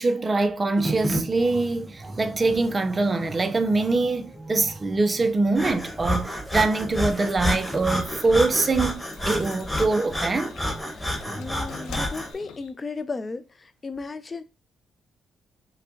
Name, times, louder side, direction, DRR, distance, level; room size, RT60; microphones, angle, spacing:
voice 1, 0.0-10.5 11.2-11.5, right 3 dB, 30° right, 0.6 m, -24 dB
sound 1, 0.8-12.1, right 2 dB, 15° right, 0.9 m, -39 dB
Breathing, 5.5-12.3, left 1 dB, 5° left, 1.3 m, -30 dB
sound 2, 7.5-12.7, left 6 dB, 90° left, 0.8 m, -46 dB
voice 2, 10.9-14.4, left 4 dB, 30° left, 0.6 m, -35 dB
5.6 x 2.3 x 3.8 m
cardioid pair, 90°, 0 cm